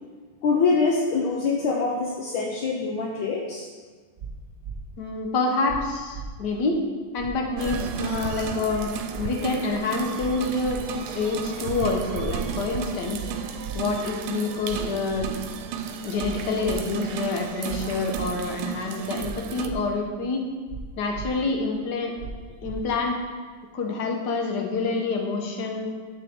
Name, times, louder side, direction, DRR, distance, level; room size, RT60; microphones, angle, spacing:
voice 1, 0.4-3.7, left 4 dB, 70° left, 0 dB, 1.5 m, -24 dB
sound 1, 4.2-4.3 4.6-4.7 5.7-5.8 6.1-6.3 7.2-7.3 7.6-7.8 8.7-8.8 9.1-9.2 10.2-10.3 10.6-10.8 11.7-11.8 12.1-12.3 13.2-13.3 13.6-13.8 14.7-14.8 15.1-15.3 16.2-16.3 16.6-16.7 17.7-17.8 18.1-18.3 19.2-19.3 19.6-19.7 20.7-20.8 21.1-21.3 22.2-22.3 22.6-22.7, right 8 dB, 45° right, 0.8 m, -36 dB
voice 2, 5.0-6.8 7.1-10.8 11.1-13.2 13.7-15.3 16.0-20.4 21.0-22.1 22.6-23.2 23.7-25.9, left 3 dB, 55° left, 2 dB, 1.6 m, -27 dB
sound 2, 7.6-19.7, right 7 dB, 85° right, 1.5 m, -33 dB
11.0 x 7.4 x 3.7 m, 1.5 s
omnidirectional pair, 2.4 m